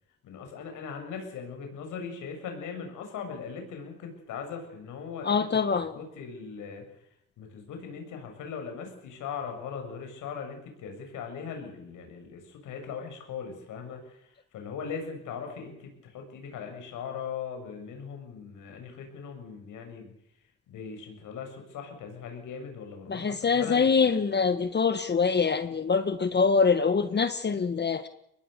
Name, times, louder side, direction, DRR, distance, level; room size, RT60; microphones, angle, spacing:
voice 1, 0.2-5.4 5.7-6.8 7.4-20.1 20.7-24.2, left 6 dB, 85° left, 4 dB, 7.4 m, -39 dB
voice 2, 5.2-5.9 23.1-28.1, left 5 dB, 35° left, 11 dB, 1.4 m, -24 dB
24.0 x 20.0 x 6.9 m, 0.77 s
cardioid pair, 90°, 30 cm